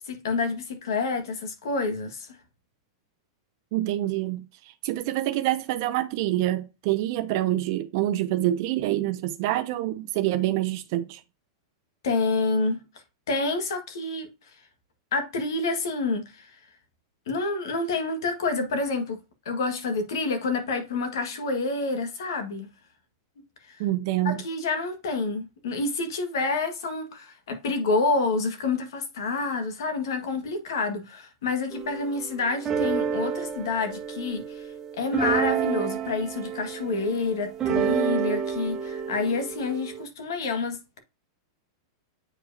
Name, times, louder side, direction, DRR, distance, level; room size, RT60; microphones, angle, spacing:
voice 1, 0.1-2.3 12.0-12.8 13.3-14.3 15.1-16.6 17.3-19.2 19.5-22.7 23.7-23.8 24.2-34.7 35.0-41.0, left 3 dB, 80° left, 1.7 m, -28 dB
voice 2, 3.7-11.2 23.8-24.4, right 14 dB, 55° right, 0.5 m, -26 dB
sound 1, 31.7-40.0, right 8 dB, 25° right, 1.1 m, -29 dB
7.9 x 4.7 x 2.7 m
hypercardioid pair, 125°, 2 cm